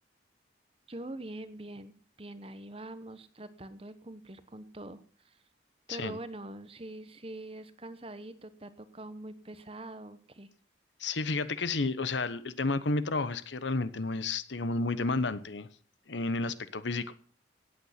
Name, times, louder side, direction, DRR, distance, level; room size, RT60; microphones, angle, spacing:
voice 1, 0.9-5.4 5.9-10.5, right 1 dB, 30° right, 13 dB, 1.0 m, -44 dB
voice 2, 11.0-15.7 16.1-17.1, left 3 dB, 75° left, 14 dB, 1.0 m, -31 dB
17.0 x 8.7 x 5.8 m, 0.43 s
head